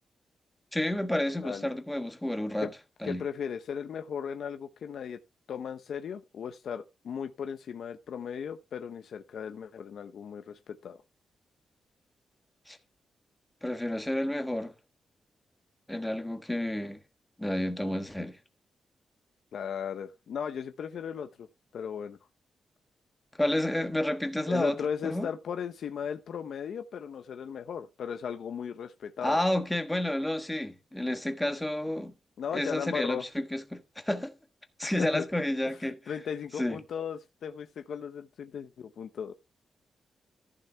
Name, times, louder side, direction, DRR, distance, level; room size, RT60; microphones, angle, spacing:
voice 1, 0.7-2.7 3.0-3.3 12.7-12.8 13.6-14.7 15.9-17.0 17.4-18.4 23.4-25.3 29.2-32.1 32.5-34.4 34.8-36.1 36.6-36.8, left 1 dB, 5° left, 1.3 m, -30 dB
voice 2, 3.0-5.2 5.5-11.0 19.5-21.5 21.7-22.2 24.5-29.4 32.4-33.2 34.8-35.2 35.6-39.3, left 7 dB, 65° left, 0.7 m, -37 dB
14.5 x 6.7 x 3.4 m
wide cardioid pair, 175°, 0 cm